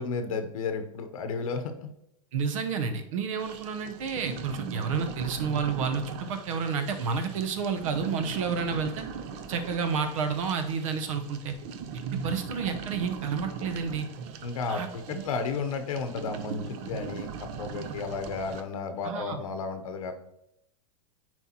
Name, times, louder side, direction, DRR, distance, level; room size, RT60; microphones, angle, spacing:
voice 1, 0.0-1.9 14.4-20.1, left 4 dB, 90° left, 7 dB, 0.8 m, -33 dB
voice 2, 2.3-9.0 9.5-11.5 12.1-14.1 14.7-15.2 19.0-19.4, right 5 dB, 75° right, 8 dB, 0.9 m, -30 dB
sound 1, 3.4-18.6, right 6 dB, 40° right, 0.5 m, -40 dB
9.7 x 4.5 x 2.9 m, 0.82 s
supercardioid pair, 155°, 17 cm